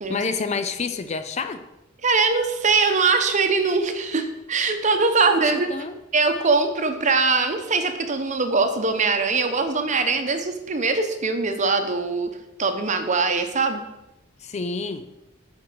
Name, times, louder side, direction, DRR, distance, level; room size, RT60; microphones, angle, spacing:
voice 1, 0.1-1.6 5.3-6.0 14.4-15.0, left 4 dB, 35° left, 0.4 m, -28 dB
voice 2, 2.0-5.7 6.1-12.3 12.6-13.8, right 4 dB, 35° right, 0.9 m, -22 dB
8.4 x 4.6 x 6.1 m
head